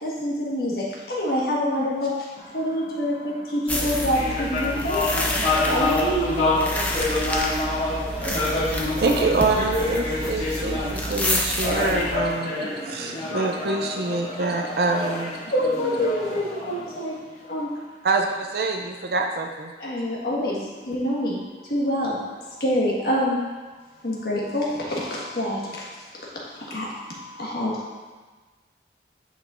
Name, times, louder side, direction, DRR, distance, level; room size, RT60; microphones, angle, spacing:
voice 1, 0.0-2.1 2.5-5.3 5.7-6.3 15.5-17.2 17.5-17.7 19.8-21.4 21.7-22.2 22.6-23.4 24.0-25.8 26.7-26.9 27.4-27.7, equal, 60° left, -5 dB, 1.4 m, -26 dB
sound 1, 3.7-12.2, left 1 dB, 10° left, 0.6 m, -29 dB
Tibet - Praying, 3.8-17.5, left 2 dB, 40° left, 1.8 m, -27 dB
voice 2, 6.8-8.3 27.1-27.4, left 2 dB, 35° right, -8 dB, 2.1 m, -46 dB
voice 3, 9.0-15.4 18.0-19.7, right 3 dB, 60° right, 3 dB, 0.4 m, -26 dB
9.4 x 5.4 x 2.5 m, 1.3 s
head